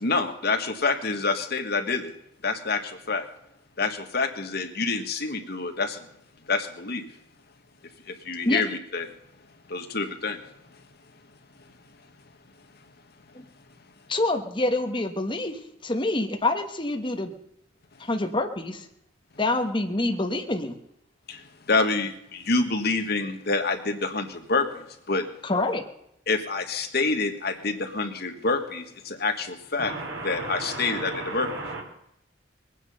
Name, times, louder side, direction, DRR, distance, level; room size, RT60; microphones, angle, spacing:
voice 1, 0.0-2.1 2.4-3.3 3.8-6.1 6.5-7.1 8.1-9.1 9.7-10.4 21.3-21.4 21.7-25.2 26.3-29.9 30.2-31.5, left 3 dB, 55° left, 6 dB, 1.5 m, -27 dB
voice 2, 14.1-17.3 18.0-18.8 19.4-20.7 25.4-25.8, left 2 dB, 25° left, 4 dB, 1.3 m, -26 dB
voice 3, 29.8-31.8, right 2 dB, 75° right, 0 dB, 3.4 m, -34 dB
21.5 x 9.5 x 5.5 m, 0.78 s
head